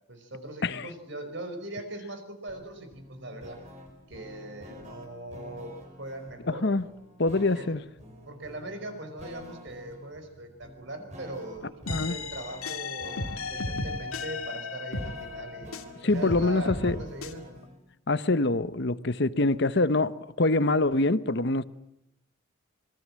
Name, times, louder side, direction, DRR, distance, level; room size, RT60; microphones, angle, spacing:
voice 1, 0.1-3.6 4.1-6.7 7.3-7.7 8.3-15.7 16.0-17.4, right 1 dB, 55° right, 5.3 m, -40 dB
sound 1, 2.5-17.8, equal, 35° right, 5.5 m, -48 dB
voice 2, 6.5-6.8 7.2-7.8 11.9-12.1 16.0-17.0 18.1-21.6, left 2 dB, 50° left, 1.0 m, -25 dB
sound 2, 11.9-15.9 16.3-17.3, left 3 dB, 85° left, 2.4 m, -35 dB
27.0 x 22.0 x 7.6 m
head